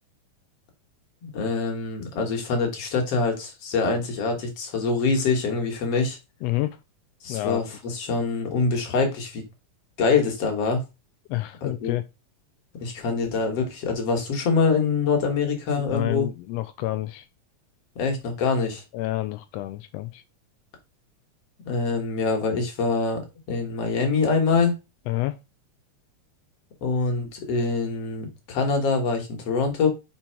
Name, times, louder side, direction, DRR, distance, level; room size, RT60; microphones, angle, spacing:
voice 1, 1.2-6.2 7.2-9.4 10.0-10.8 11.6-12.0 12.8-16.3 18.0-18.8 21.7-23.2 23.5-24.7 26.8-29.9, left 4 dB, 55° left, 3 dB, 2.4 m, -24 dB
voice 2, 6.4-6.8 7.3-7.6 11.3-12.0 15.8-17.3 18.9-20.2 25.1-25.4, left 17 dB, 85° left, 11 dB, 1.4 m, -29 dB
5.5 x 4.5 x 4.4 m, 0.26 s
omnidirectional pair, 3.4 m